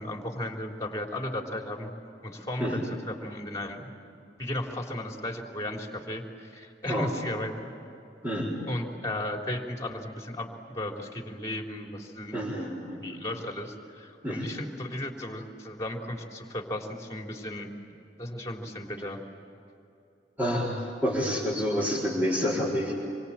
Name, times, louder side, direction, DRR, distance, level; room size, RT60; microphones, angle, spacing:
voice 1, 0.0-1.9 2.2-3.9 4.4-7.7 8.7-12.4 12.9-17.7 18.2-19.2, left 1 dB, 20° left, 2 dB, 3.6 m, -35 dB
voice 2, 8.2-8.5 12.3-13.2 14.2-14.5 20.4-22.9, equal, 10° right, -7 dB, 4.5 m, -28 dB
27.0 x 24.0 x 8.9 m, 2.7 s
head